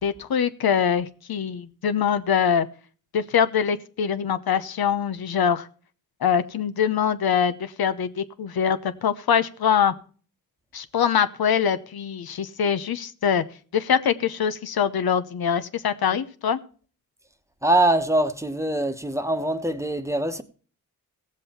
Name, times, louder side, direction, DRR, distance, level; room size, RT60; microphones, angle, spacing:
voice 1, 0.0-2.7 3.1-5.7 6.2-9.9 10.7-13.4 13.7-16.6, left 7 dB, 80° left, 0.9 m, -23 dB
voice 2, 17.6-20.4, right 1 dB, 10° right, 1.1 m, -23 dB
16.5 x 7.5 x 4.3 m
cardioid pair, 65°, 36 cm